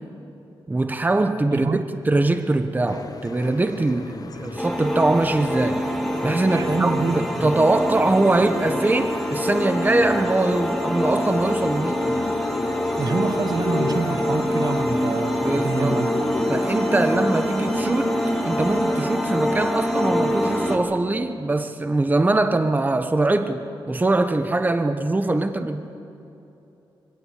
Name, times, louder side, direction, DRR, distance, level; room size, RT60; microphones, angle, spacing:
voice 1, 0.7-1.8 2.1-5.9 6.2-12.3 15.4-16.0 16.5-18.1 18.4-25.9, right 2 dB, 20° right, 1.0 m, -22 dB
voice 2, 1.5-1.8 6.5-7.5 13.0-16.3, right 4 dB, 50° right, 1.1 m, -26 dB
sound 1, 2.9-19.0, left 5 dB, 45° left, 0.9 m, -35 dB
sound 2, 4.6-20.8, equal, ahead, 2.1 m, -25 dB
23.5 x 16.5 x 7.9 m
wide cardioid pair, 105°, 9 cm